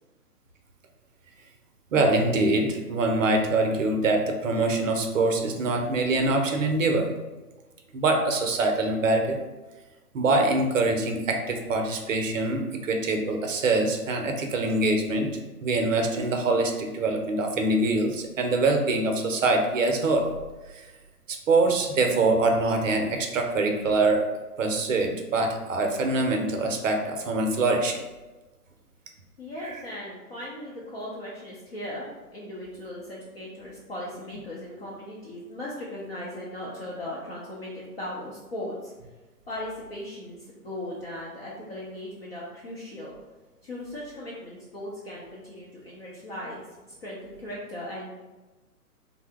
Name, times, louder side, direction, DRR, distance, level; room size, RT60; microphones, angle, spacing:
voice 1, 1.9-7.1 7.9-9.4 10.1-15.3 15.6-20.3 20.7-20.9 21.3-24.3 24.6-28.0 29.6-29.8, right 2 dB, 55° right, 4 dB, 0.6 m, -24 dB
voice 2, 29.4-32.1 32.3-38.9 39.5-43.1 43.6-46.6 46.8-48.1, left 1 dB, 40° left, -6 dB, 0.6 m, -38 dB
2.7 x 2.0 x 3.3 m, 1.2 s
hypercardioid pair, 150°, 46 cm